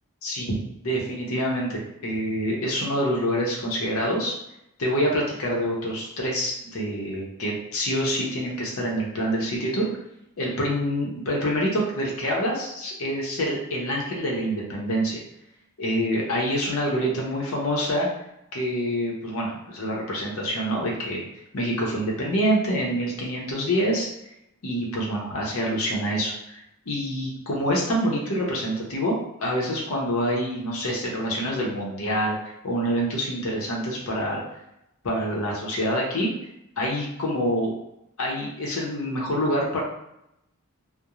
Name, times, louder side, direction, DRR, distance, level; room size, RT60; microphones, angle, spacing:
voice 1, 0.2-4.4 4.8-9.9 10.4-15.2 15.8-18.1 18.5-21.2 21.5-24.1 24.6-26.6 26.9-32.4 32.6-34.4 35.0-36.3 36.8-37.7 38.2-39.8, equal, 65° left, -3 dB, 0.7 m, -26 dB
2.4 x 2.0 x 2.9 m, 0.81 s
head